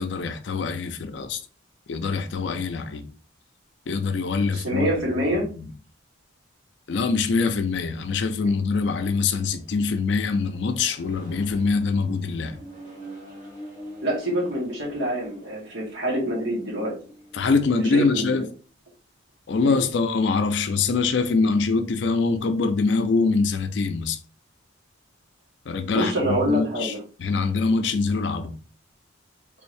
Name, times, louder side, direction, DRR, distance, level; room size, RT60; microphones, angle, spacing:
voice 1, 0.0-1.4 1.9-3.1 3.9-4.9 5.3-5.7 6.9-12.6 17.3-18.4 19.5-24.2 25.7-26.9 27.2-28.6, left 4 dB, 60° left, 0.4 m, -24 dB
voice 2, 4.5-5.5 14.0-16.9 17.9-18.4 19.6-19.8 25.9-27.0, equal, 70° right, 1.5 m, -26 dB
Accelerating revving vroom, 7.9-18.2, equal, 35° right, 1.3 m, -46 dB
3.3 x 2.6 x 3.2 m
head